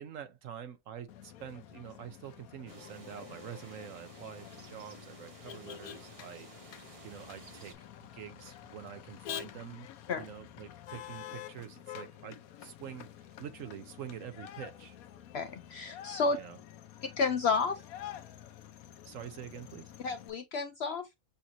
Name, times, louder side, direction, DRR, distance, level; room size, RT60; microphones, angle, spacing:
voice 1, 0.0-6.5 6.7-9.9 10.2-13.1 13.4-15.0 16.3-16.6 19.0-19.9, right 9 dB, 70° right, 1.1 m, -46 dB
Motor vehicle (road), 1.1-20.3, left 11 dB, 85° left, 1.1 m, -48 dB
sound 1, 2.7-7.7, right 3 dB, 30° right, 0.9 m, -54 dB
voice 2, 15.3-16.4 17.0-17.8 20.0-21.1, left 4 dB, 65° left, 0.6 m, -31 dB
6.8 x 2.6 x 2.7 m
omnidirectional pair, 1.5 m